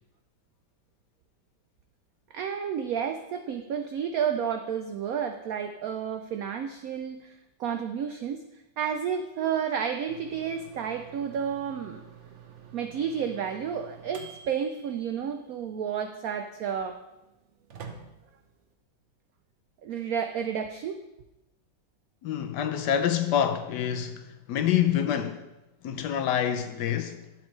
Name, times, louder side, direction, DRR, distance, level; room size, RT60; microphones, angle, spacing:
voice 1, 2.3-8.4 8.8-12.0 12.7-17.0 19.8-21.0, right 7 dB, 90° right, 0.7 m, -31 dB
sound 1, 10.1-18.7, right 7 dB, 55° right, 0.8 m, -49 dB
voice 2, 22.2-25.5 25.8-27.3, left 9 dB, 70° left, 1.1 m, -27 dB
12.0 x 7.3 x 3.2 m
omnidirectional pair, 2.1 m